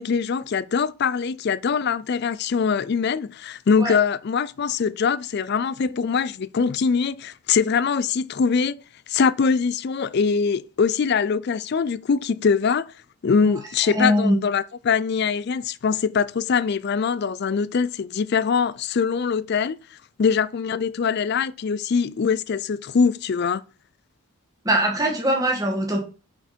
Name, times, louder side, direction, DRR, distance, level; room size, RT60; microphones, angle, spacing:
voice 1, 0.0-8.8 9.1-12.9 13.2-19.8 20.2-23.6, left 5 dB, 45° left, 0.3 m, -23 dB
voice 2, 13.9-14.4 24.7-26.0, equal, 15° right, 1.8 m, -21 dB
6.0 x 5.8 x 4.3 m
head